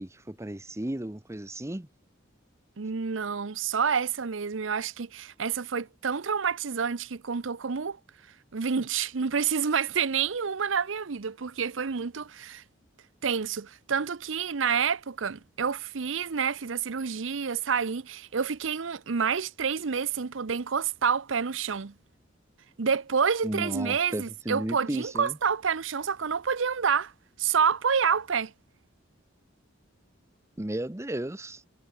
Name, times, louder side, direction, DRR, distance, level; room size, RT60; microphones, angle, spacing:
voice 1, 0.0-1.9 23.4-25.3 30.6-31.6, right 1 dB, 15° right, 0.9 m, -34 dB
voice 2, 2.8-8.0 8.5-12.6 13.2-21.9 22.8-27.1 27.4-28.5, right 6 dB, 75° right, 0.7 m, -28 dB
head